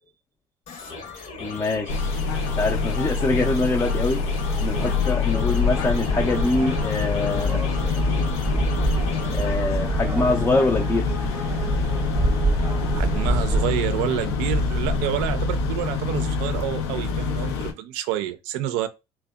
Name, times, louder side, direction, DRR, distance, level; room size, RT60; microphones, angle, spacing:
sound 1, 0.7-9.5, left 4 dB, 60° left, 0.9 m, -38 dB
voice 1, 1.4-2.1 2.5-7.6 9.3-11.1, left 2 dB, 20° left, 0.4 m, -24 dB
sound 2, 1.9-17.7, left 4 dB, 85° left, 0.5 m, -25 dB
sound 3, 4.4-13.6, right 2 dB, 20° right, 0.8 m, -27 dB
voice 2, 12.9-18.9, right 12 dB, 75° right, 0.4 m, -28 dB
2.7 x 2.1 x 2.2 m
hypercardioid pair, 75°, 13 cm